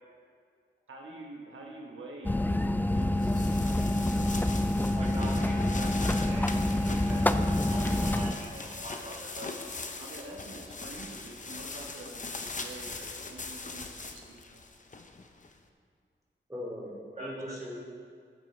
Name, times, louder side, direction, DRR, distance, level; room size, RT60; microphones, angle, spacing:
voice 1, 0.9-2.4 2.8-4.5 10.0-14.6, right 2 dB, 80° right, -1 dB, 1.2 m, -47 dB
sound 1, 2.2-8.3, left 1 dB, 10° left, 0.4 m, -27 dB
sound 2, 3.0-15.5, left 3 dB, 40° left, 0.8 m, -41 dB
voice 2, 4.9-9.6 17.2-17.3, equal, 35° right, -5 dB, 1.5 m, -43 dB
voice 3, 16.5-17.7, equal, 15° right, -3 dB, 2.8 m, -39 dB
14.5 x 7.7 x 3.3 m, 2.1 s
cardioid pair, 65°, 20 cm